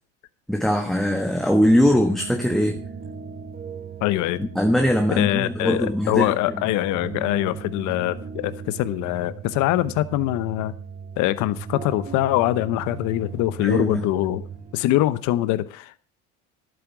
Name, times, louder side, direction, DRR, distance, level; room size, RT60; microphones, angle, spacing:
voice 1, 0.5-2.8 4.4-6.3 13.6-14.0, equal, ahead, 1.3 m, -21 dB
sound 1, 1.0-14.6, right 7 dB, 45° right, 1.8 m, -40 dB
sound 2, 1.8-15.1, right 6 dB, 25° right, 1.4 m, -41 dB
voice 2, 4.0-4.4 5.2-10.7 11.2-14.5 14.7-15.9, left 15 dB, 65° left, 0.9 m, -23 dB
11.5 x 8.7 x 5.9 m
supercardioid pair, 110°, 31 cm